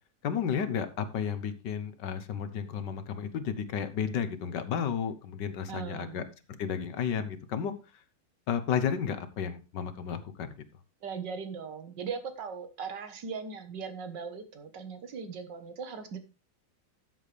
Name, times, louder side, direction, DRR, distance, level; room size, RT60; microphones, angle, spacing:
voice 1, 0.2-6.2 6.6-7.7 8.5-10.6, left 7 dB, 75° left, 11 dB, 1.7 m, -32 dB
voice 2, 5.7-6.2 11.0-16.2, right 5 dB, 75° right, 9 dB, 2.0 m, -39 dB
13.0 x 7.6 x 3.4 m, 0.29 s
omnidirectional pair, 1.9 m